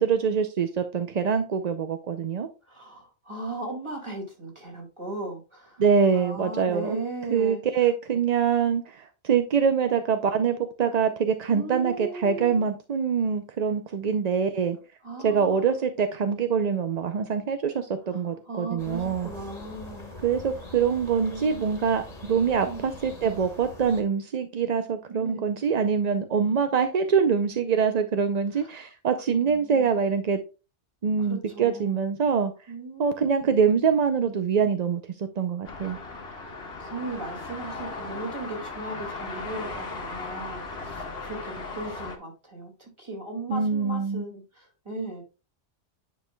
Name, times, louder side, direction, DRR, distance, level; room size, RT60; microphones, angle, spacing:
voice 1, 0.0-2.5 5.8-7.0 7.3-14.8 15.2-19.3 20.2-30.4 31.0-32.5 33.0-36.0 43.5-44.2, right 6 dB, 50° right, 8 dB, 0.5 m, -24 dB
voice 2, 2.7-5.8 6.1-7.6 11.5-12.6 15.0-15.7 18.5-20.1 21.3-21.9 22.6-22.9 25.1-25.4 29.3-29.9 31.3-32.0 32.7-33.5 36.8-45.2, right 2 dB, 25° right, 0 dB, 2.3 m, -37 dB
sound 1, 18.8-24.0, left 2 dB, 35° left, 1.6 m, -43 dB
sound 2, 35.6-42.2, left 3 dB, 60° left, 1.5 m, -37 dB
9.9 x 5.3 x 2.2 m, 0.31 s
omnidirectional pair, 1.2 m